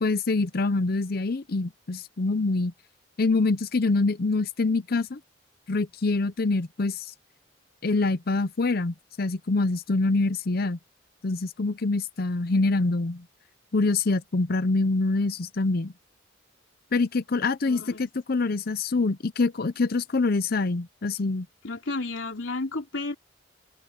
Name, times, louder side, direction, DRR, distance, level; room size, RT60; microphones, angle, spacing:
voice 1, 0.0-2.7 3.2-5.2 5.7-7.1 7.8-10.8 11.2-13.2 13.7-15.9 16.9-21.5, left 3 dB, 55° left, 0.7 m, -25 dB
voice 2, 17.6-18.1 21.6-23.1, left 3 dB, 90° left, 3.2 m, -32 dB
head